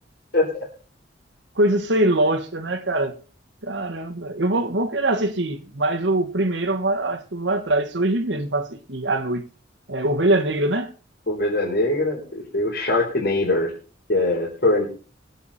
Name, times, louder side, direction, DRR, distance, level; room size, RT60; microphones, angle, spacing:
voice 1, 0.3-0.7 11.3-13.7 14.1-14.9, left 2 dB, 60° left, 4.1 m, -22 dB
voice 2, 1.5-3.1 3.6-9.4 9.9-10.9, right 1 dB, 75° right, 1.6 m, -23 dB
22.5 x 8.2 x 4.3 m
head